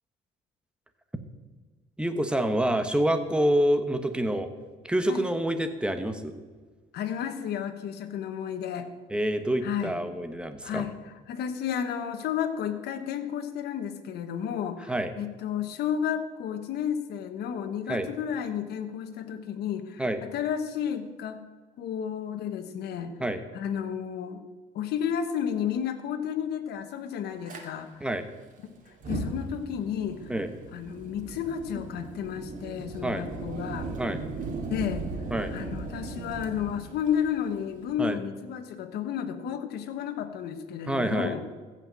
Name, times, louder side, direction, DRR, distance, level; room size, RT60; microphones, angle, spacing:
voice 1, 2.0-4.5 4.9-6.3 9.1-10.9 14.9-15.1 17.9-18.1 20.0-20.2 23.2-23.4 28.0-28.2 30.3-30.5 33.0-33.2 34.0-34.2 35.3-35.5 38.0-38.2 40.9-41.4, right 1 dB, 5° right, 8 dB, 1.1 m, -27 dB
voice 2, 6.9-8.9 9.6-10.0 10.6-21.4 21.8-23.1 23.5-24.4 24.7-27.9 28.9-30.3 30.7-33.9 34.7-35.0 35.5-41.4, left 8 dB, 75° left, 9 dB, 1.3 m, -32 dB
Fire, 27.5-27.6 28.9-37.9, right 3 dB, 50° right, 2.5 m, -37 dB
15.0 x 5.9 x 7.5 m, 1.4 s
cardioid pair, 110°, 17 cm